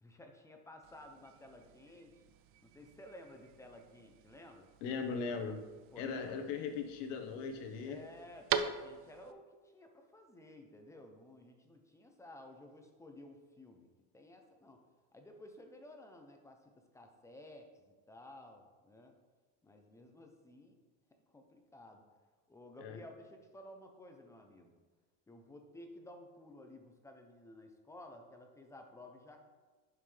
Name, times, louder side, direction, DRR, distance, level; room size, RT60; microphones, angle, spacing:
voice 1, 0.0-2.2 2.6-4.7 5.9-6.4 7.8-13.9 14.1-14.8 15.1-19.1 19.6-20.8 21.3-22.0 22.5-24.8 25.3-29.4, left 1 dB, 10° left, 4 dB, 0.6 m, -54 dB
sound 1, 0.8-9.3, right 8 dB, 40° right, 0.4 m, -44 dB
voice 2, 4.8-5.6 6.0-8.0 22.8-23.0, left 5 dB, 75° left, 5 dB, 1.3 m, -39 dB
11.0 x 5.8 x 3.3 m, 1.3 s
cardioid pair, 160°, 36 cm